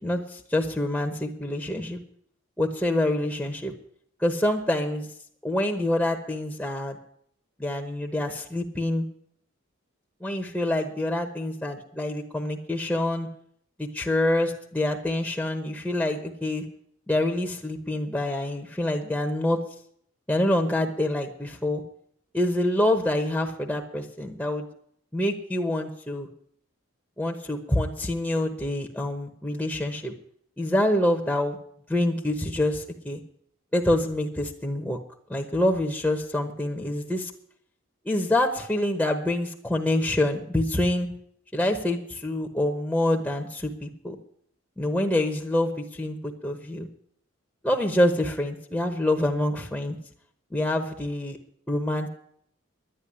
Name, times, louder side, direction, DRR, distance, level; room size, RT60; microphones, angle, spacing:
voice 1, 0.0-2.0 2.6-3.7 4.2-5.1 5.4-7.0 7.6-9.1 10.2-13.3 13.8-16.6 17.1-19.6 20.3-21.8 22.3-24.7 25.1-26.3 27.2-30.1 30.6-31.6 31.9-33.2 33.7-35.0 35.3-37.3 38.0-41.1 41.5-44.2 44.8-46.9 47.6-50.0 50.5-51.4 51.7-52.1, left 1 dB, 5° left, 2 dB, 1.0 m, -26 dB
11.0 x 10.5 x 9.8 m, 0.68 s
head